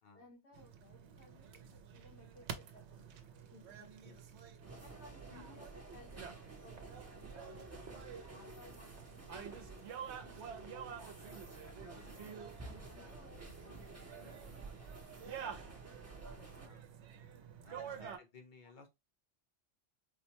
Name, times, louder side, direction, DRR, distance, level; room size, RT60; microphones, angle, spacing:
voice 1, 0.1-3.1 3.5-4.2 4.8-6.9 7.4-10.9 12.1-16.7 17.7-18.0, left 2 dB, 70° left, 1.2 m, -62 dB
sound 1, 0.5-18.2, right 8 dB, 70° right, 0.9 m, -50 dB
sound 2, 4.6-16.7, right 2 dB, 15° right, 0.6 m, -52 dB
voice 2, 5.3-5.7 7.9-8.2 10.8-11.3 11.6-12.6 16.6-16.9 17.6-18.9, left 5 dB, 45° left, 0.8 m, -60 dB
4.3 x 2.1 x 2.8 m
omnidirectional pair, 1.2 m